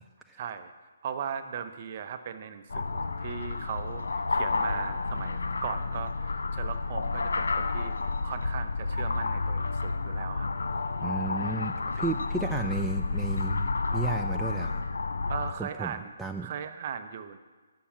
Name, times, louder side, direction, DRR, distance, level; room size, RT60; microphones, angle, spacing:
voice 1, 0.4-0.7 1.0-7.9 8.2-10.5 11.0-11.2 15.3-16.1 16.4-17.4, right 7 dB, 45° right, 9 dB, 0.8 m, -38 dB
sound 1, 2.7-15.5, left 3 dB, 80° left, 0.7 m, -30 dB
voice 2, 11.0-14.8 15.6-16.5, right 4 dB, 5° right, 3 dB, 0.5 m, -34 dB
11.5 x 6.3 x 7.3 m, 1.4 s
hypercardioid pair, 145°, 0 cm